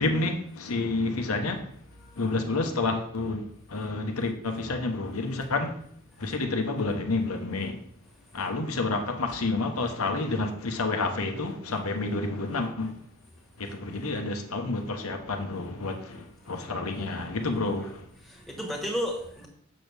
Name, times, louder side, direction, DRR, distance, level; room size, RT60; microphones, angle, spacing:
voice 1, 0.0-1.6 2.2-5.8 6.2-7.8 8.3-12.9 13.6-18.1, left 3 dB, 90° left, 1.0 m, -29 dB
voice 2, 16.4-17.3 18.2-19.5, equal, ahead, 1.4 m, -35 dB
7.7 x 6.3 x 3.4 m
head